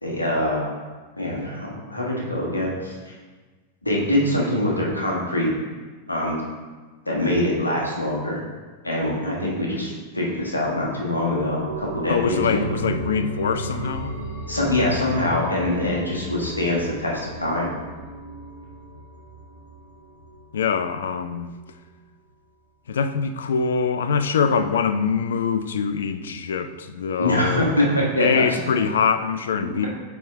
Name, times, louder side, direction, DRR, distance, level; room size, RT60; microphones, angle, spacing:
voice 1, 0.0-0.7 1.2-2.9 3.8-5.5 6.1-6.4 7.0-8.4 8.8-12.6 14.5-17.7 27.2-28.6, left 1 dB, 80° left, -3 dB, 1.4 m, -24 dB
sound 1, 11.6-20.9 21.3-21.4, right 2 dB, 80° right, 1.3 m, -34 dB
voice 2, 12.1-14.2 20.5-21.5 22.9-27.8 28.2-29.9, left 6 dB, 65° left, 10 dB, 0.4 m, -24 dB
9.1 x 3.6 x 3.5 m, 1.3 s
figure-of-eight pair, 90°, 0 cm